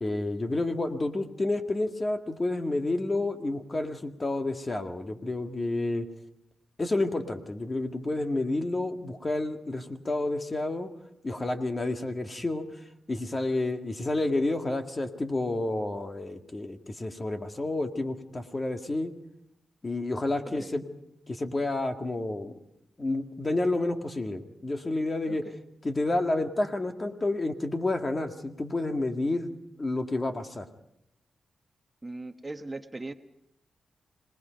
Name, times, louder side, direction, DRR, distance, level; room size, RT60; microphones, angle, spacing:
voice 1, 0.0-6.1 6.8-10.9 11.2-12.7 13.1-19.1 19.8-20.8 21.3-22.5 23.0-25.5 25.8-29.5 29.8-30.7, left 2 dB, 30° left, 5 dB, 1.9 m, -30 dB
voice 2, 32.0-33.1, right 2 dB, 20° right, 7 dB, 1.1 m, -39 dB
26.5 x 19.5 x 5.2 m, 0.81 s
cardioid pair, 75°, 0 cm